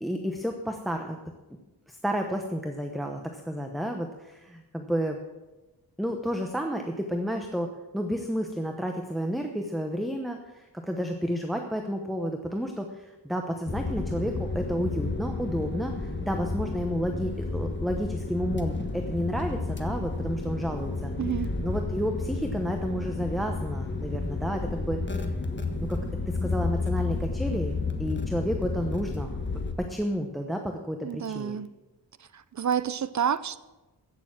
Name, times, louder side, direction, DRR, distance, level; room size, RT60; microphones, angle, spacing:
voice 1, 0.0-1.2 1.9-5.2 6.0-21.1 21.6-25.0 25.9-26.0 26.3-27.7 28.0-29.3 29.8-31.6, equal, ahead, 4 dB, 0.9 m, -31 dB
sound 1, 13.7-29.7, left 3 dB, 25° left, 1.4 m, -31 dB
voice 2, 21.2-21.5 31.0-31.7 32.3-33.6, right 8 dB, 45° right, 16 dB, 0.5 m, -29 dB
15.5 x 7.0 x 7.5 m, 1.1 s
wide cardioid pair, 150°, 41 cm